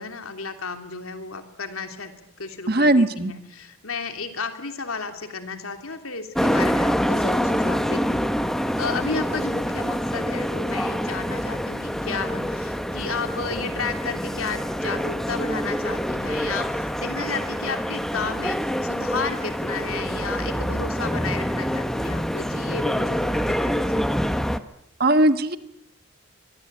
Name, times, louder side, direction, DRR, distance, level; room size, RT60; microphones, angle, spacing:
voice 1, 0.0-2.1 2.4-8.3 8.8-24.1, left 4 dB, 90° left, 6 dB, 3.0 m, -33 dB
voice 2, 2.7-3.3 25.0-25.6, right 1 dB, 45° right, 10 dB, 1.5 m, -18 dB
sound 1, 6.3-24.6, equal, ahead, 0.9 m, -26 dB
24.5 x 22.5 x 8.8 m, 0.80 s
head